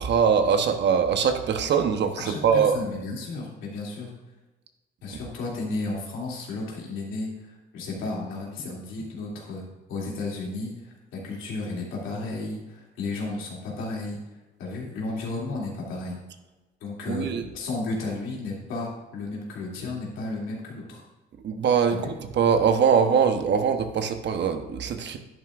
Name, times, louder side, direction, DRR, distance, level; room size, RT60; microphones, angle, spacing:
voice 1, 0.0-2.7 17.1-17.4 21.4-25.2, right 7 dB, 60° right, 7 dB, 1.0 m, -22 dB
voice 2, 2.2-4.1 5.0-9.6 9.9-14.2 14.6-16.2 16.8-21.0 22.0-22.1, left 3 dB, 90° left, -3 dB, 2.8 m, -33 dB
10.5 x 9.5 x 2.5 m, 1.1 s
cardioid pair, 90°, 20 cm